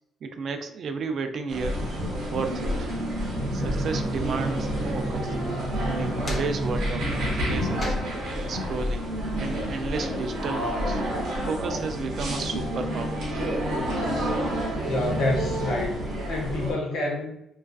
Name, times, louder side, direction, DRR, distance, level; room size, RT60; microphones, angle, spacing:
voice 1, 0.2-1.9 2.3-2.9 3.5-5.3 5.8-8.0 8.5-9.1 9.4-11.0 11.4-13.3, right 4 dB, 60° right, 6 dB, 0.3 m, -33 dB
sound 1, 1.5-16.7, equal, 80° right, 0.8 m, -29 dB
Drum, 3.3-8.4, right 2 dB, 5° left, 0.8 m, -33 dB
sound 2, 5.7-10.7, left 1 dB, 35° left, 0.5 m, -40 dB
voice 2, 14.8-17.4, left 2 dB, 75° left, -1 dB, 0.7 m, -28 dB
2.3 x 2.3 x 2.3 m, 0.86 s
cardioid pair, 90°, 0 cm